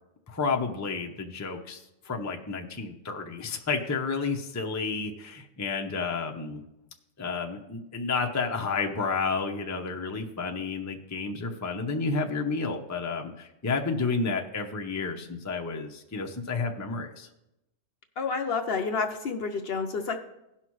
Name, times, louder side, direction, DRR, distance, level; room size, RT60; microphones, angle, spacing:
voice 1, 0.3-6.6 7.2-17.3, left 4 dB, 20° left, 2 dB, 0.5 m, -31 dB
voice 2, 18.2-20.2, left 4 dB, 55° left, 6 dB, 0.8 m, -29 dB
16.5 x 5.7 x 3.1 m, 0.89 s
omnidirectional pair, 1.3 m